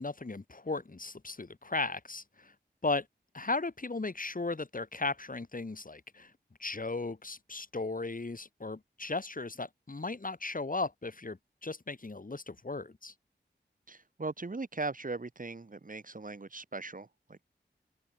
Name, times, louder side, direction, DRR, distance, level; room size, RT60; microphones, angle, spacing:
voice 1, 0.0-2.5 2.8-3.1 3.3-6.3 6.6-13.1, left 3 dB, 50° left, 4.8 m, -36 dB
voice 2, 13.9-17.4, right 3 dB, 50° right, 2.9 m, -39 dB
open air
wide cardioid pair, 60°, 18 cm